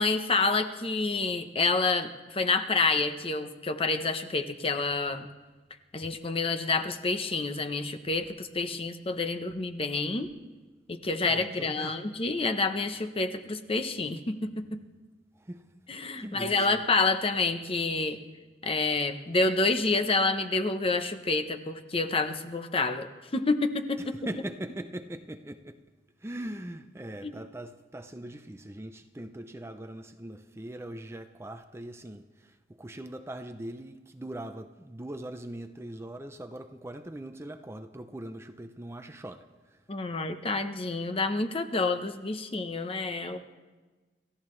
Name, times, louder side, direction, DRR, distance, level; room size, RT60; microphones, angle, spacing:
voice 1, 0.0-5.3 5.9-10.3 10.9-14.8 15.9-18.2 18.6-24.1 27.2-27.3 39.9-43.4, left 3 dB, 30° left, 0.8 m, -28 dB
voice 2, 11.2-12.0 15.3-15.7 16.2-16.8 24.0-25.8 26.2-39.8, right 1 dB, 15° right, 0.5 m, -41 dB
28.5 x 14.0 x 3.2 m
head